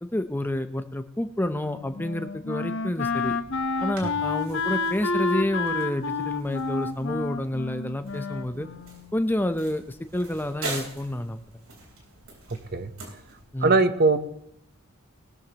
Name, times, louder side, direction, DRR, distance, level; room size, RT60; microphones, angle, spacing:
voice 1, 0.0-3.4 3.8-8.7 9.1-11.4 13.5-13.8, left 1 dB, 10° left, 9 dB, 0.7 m, -29 dB
Wind instrument woodwind instrument, 1.4-9.2, left 3 dB, 60° left, 1.0 m, -30 dB
sound 1, 3.0-13.4, right 3 dB, 65° right, 4.0 m, -43 dB
voice 2, 13.6-14.2, right 3 dB, 45° right, 11 dB, 0.9 m, -20 dB
18.5 x 13.0 x 3.0 m, 0.72 s
head